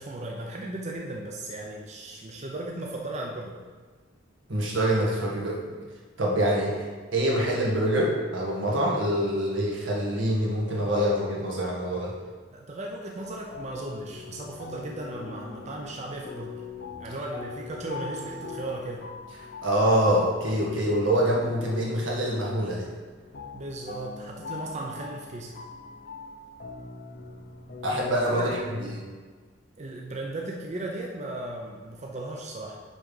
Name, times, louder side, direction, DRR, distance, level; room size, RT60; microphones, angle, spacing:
voice 1, 0.0-3.6 12.5-16.6 17.0-19.1 23.5-25.5 28.3-28.8 29.8-32.8, right 2 dB, 35° right, 0 dB, 0.6 m, -36 dB
voice 2, 4.5-5.8 6.2-6.9 7.1-12.1 19.6-22.9 27.8-29.0, right 1 dB, 85° right, -3 dB, 1.7 m, -25 dB
sound 1, 13.2-29.0, left 4 dB, 55° left, 0.8 m, -42 dB
6.1 x 5.0 x 5.4 m, 1.5 s
head